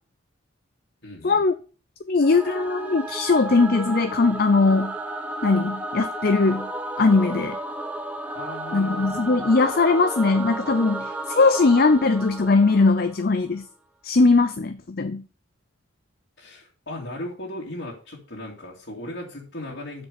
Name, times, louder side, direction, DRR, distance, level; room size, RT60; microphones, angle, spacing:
voice 1, 1.0-1.4 8.3-9.0 16.4-20.0, left 1 dB, 65° left, 2.6 m, -37 dB
voice 2, 2.1-4.9 5.4-6.7 7.0-7.6 8.7-13.6 14.0-15.2, left 3 dB, 50° left, 0.5 m, -20 dB
Singing / Musical instrument, 2.2-13.5, right 1 dB, 5° right, 1.0 m, -33 dB
7.8 x 6.7 x 6.7 m
head